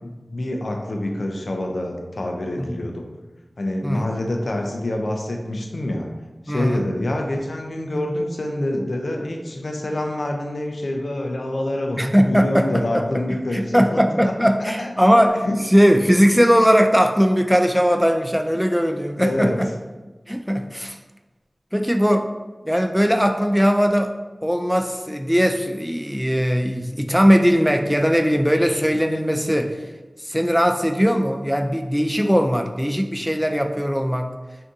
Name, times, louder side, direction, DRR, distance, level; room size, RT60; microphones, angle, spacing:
voice 1, 0.0-3.0 3.6-6.1 6.4-14.3 14.6-14.9 15.4-15.6 19.2-19.6, left 1 dB, 75° left, 2 dB, 0.4 m, -26 dB
voice 2, 6.5-6.8 12.0-13.1 13.5-19.7 20.3-21.0 21.7-22.3 22.6-24.1 24.4-29.8 30.2-34.3, equal, ahead, 4 dB, 0.3 m, -19 dB
2.6 x 2.6 x 3.5 m, 1.2 s
wide cardioid pair, 55°, 0 cm